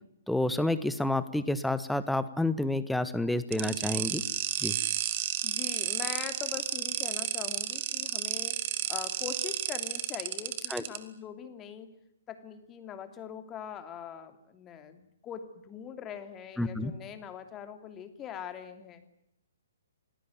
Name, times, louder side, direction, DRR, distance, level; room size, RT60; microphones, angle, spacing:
voice 1, 0.3-4.2 4.6-4.8 10.7-10.8 16.6-16.9, left 1 dB, ahead, 14 dB, 1.4 m, -29 dB
sound 1, 3.5-11.0, right 12 dB, 35° right, 2.8 m, -32 dB
voice 2, 5.4-8.6 8.9-11.9 12.3-19.0, left 8 dB, 20° left, 8 dB, 2.8 m, -42 dB
27.5 x 20.0 x 9.3 m, 0.79 s
figure-of-eight pair, 125°, 0 cm